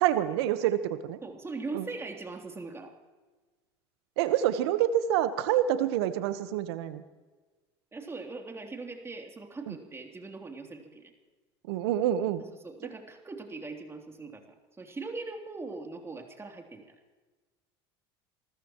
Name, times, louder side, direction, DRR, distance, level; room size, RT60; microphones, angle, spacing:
voice 1, 0.0-1.2 1.7-1.8 4.2-7.0 9.7-9.8 11.7-12.4, right 11 dB, 80° right, 11 dB, 1.2 m, -27 dB
voice 2, 1.2-2.9 7.9-11.1 12.6-14.4 14.8-16.9, right 3 dB, 20° right, 2 dB, 3.2 m, -40 dB
29.0 x 14.0 x 3.1 m, 1.3 s
hypercardioid pair, 90°, 14 cm